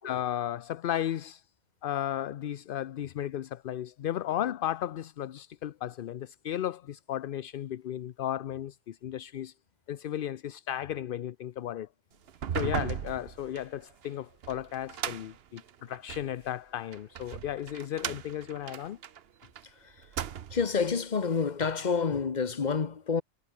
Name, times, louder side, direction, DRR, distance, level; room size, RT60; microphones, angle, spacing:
voice 1, 0.0-1.4 1.8-9.5 9.9-11.9 12.5-19.0, left 11 dB, 60° left, 0.7 m, -34 dB
sound 1, 12.3-16.3 16.9-19.6 20.0-20.8, right 9 dB, 60° right, 1.0 m, -37 dB
voice 2, 20.5-23.2, left 5 dB, 40° left, 1.2 m, -29 dB
omnidirectional pair, 1.2 m